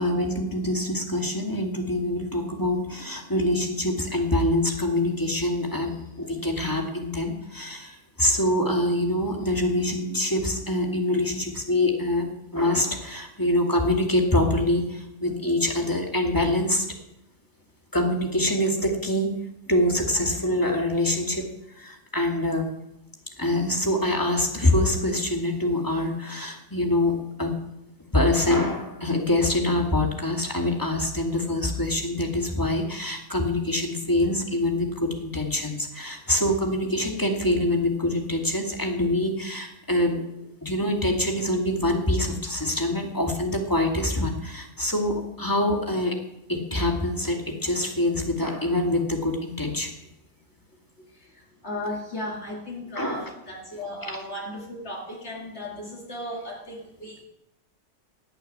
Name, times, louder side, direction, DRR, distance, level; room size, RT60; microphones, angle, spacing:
voice 1, 0.0-16.9 17.9-19.4 19.7-21.5 21.8-22.7 23.4-27.5 28.1-40.2 40.6-46.2 46.5-49.9 53.0-53.3 54.0-54.2, left 1 dB, 15° left, 1 dB, 2.3 m, -25 dB
voice 2, 51.0-57.2, left 1 dB, 60° left, -1 dB, 2.5 m, -36 dB
17.5 x 6.6 x 9.6 m, 0.87 s
omnidirectional pair, 1.3 m